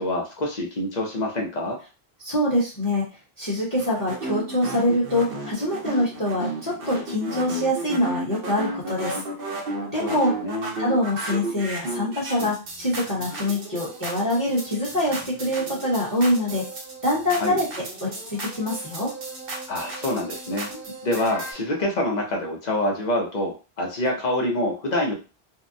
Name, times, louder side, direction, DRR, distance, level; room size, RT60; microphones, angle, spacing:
voice 1, 0.0-1.8 10.0-10.7 17.4-17.6 19.7-20.7 21.0-25.1, left 1 dB, 50° left, 1 dB, 0.7 m, -26 dB
voice 2, 2.2-3.0 3.4-9.2 9.9-10.3 10.8-16.6 17.0-19.1 20.7-20.8, left 1 dB, 20° left, -6 dB, 1.0 m, -24 dB
sound 1, 3.8-21.5, right 1 dB, 60° right, 0.9 m, -33 dB
2.7 x 2.1 x 2.6 m, 0.33 s
omnidirectional pair, 1.1 m